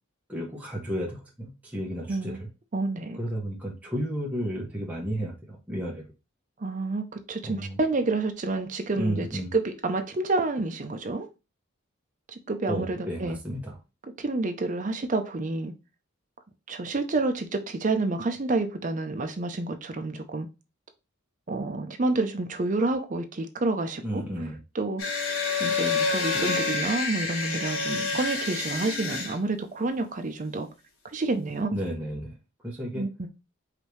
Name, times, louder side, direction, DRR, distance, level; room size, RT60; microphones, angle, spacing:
voice 1, 0.3-2.5 3.2-6.1 7.4-7.8 9.0-9.5 12.7-13.8 24.0-24.6 31.7-32.3 32.6-33.0, equal, 5° right, 0.9 m, -32 dB
voice 2, 2.1-2.4 2.7-3.2 6.6-9.3 9.5-11.3 12.3-13.4 14.2-15.7 16.7-20.5 21.5-24.2 24.7-25.0 25.6-30.7 31.1-31.8 32.9-33.3, right 2 dB, 35° right, 0.5 m, -29 dB
sound 1, 25.0-29.4, left 4 dB, 90° left, 1.3 m, -28 dB
5.0 x 2.7 x 3.1 m
head